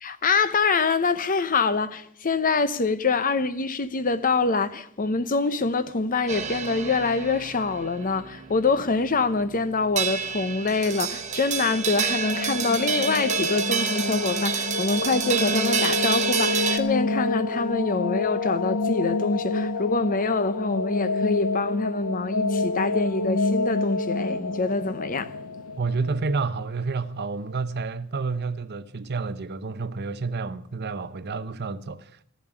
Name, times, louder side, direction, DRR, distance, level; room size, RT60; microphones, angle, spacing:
voice 1, 0.0-25.3, left 4 dB, 40° left, 0.8 m, -25 dB
sound 1, 6.3-16.8, right 6 dB, 35° right, 1.1 m, -28 dB
sound 2, 11.8-26.6, left 3 dB, 75° left, 0.7 m, -28 dB
voice 2, 25.8-32.2, right 4 dB, 50° right, 0.6 m, -29 dB
14.0 x 7.3 x 9.7 m
head